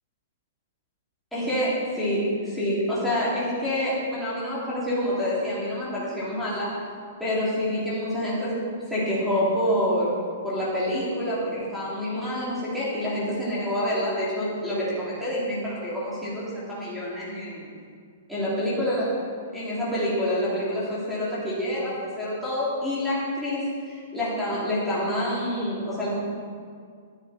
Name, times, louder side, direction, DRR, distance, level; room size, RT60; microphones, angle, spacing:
voice 1, 1.3-6.7 7.2-8.6 8.9-10.1 10.4-17.7 18.3-19.1 19.5-26.2, equal, ahead, -10 dB, 3.5 m, -27 dB
12.5 x 10.5 x 4.5 m, 2.1 s
hypercardioid pair, 160°, 0 cm